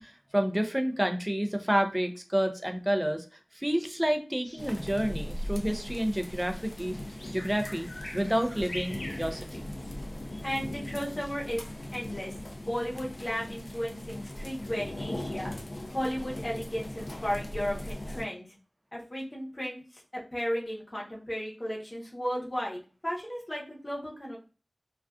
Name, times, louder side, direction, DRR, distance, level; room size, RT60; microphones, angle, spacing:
voice 1, 0.0-3.2 3.5-6.9 7.3-7.9 8.1-9.6, equal, 15° right, 6 dB, 0.4 m, -29 dB
Bird vocalization bird call bird song, 4.4-9.9, left 1 dB, 90° left, 0.9 m, -45 dB
sound 1, 4.6-18.3, left 1 dB, 55° left, 0.5 m, -39 dB
voice 2, 10.4-11.6 11.9-15.5 15.9-18.5 18.9-19.8 20.1-24.4, equal, 35° left, -3 dB, 0.8 m, -34 dB
2.4 x 2.3 x 2.3 m, 0.35 s
wide cardioid pair, 50°, 0 cm